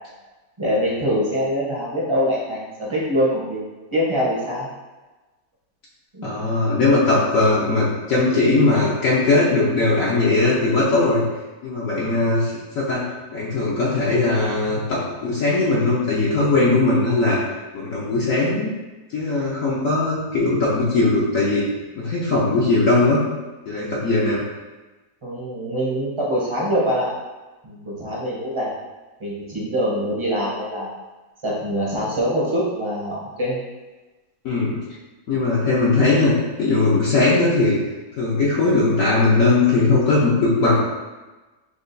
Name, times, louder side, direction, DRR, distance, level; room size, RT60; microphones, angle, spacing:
voice 1, 0.6-4.7 6.1-6.5 25.2-27.1 27.6-28.7 29.2-30.9 31.4-33.6, equal, 25° right, -6 dB, 0.7 m, -24 dB
voice 2, 6.2-11.2 11.6-13.0 13.3-17.4 17.7-18.7 19.1-21.7 22.0-23.2 23.7-24.4 34.4-34.7 35.3-36.3 36.6-37.8 38.2-40.8, left 3 dB, 60° left, -7 dB, 1.1 m, -19 dB
6.5 x 2.4 x 2.6 m, 1.2 s
omnidirectional pair, 1.8 m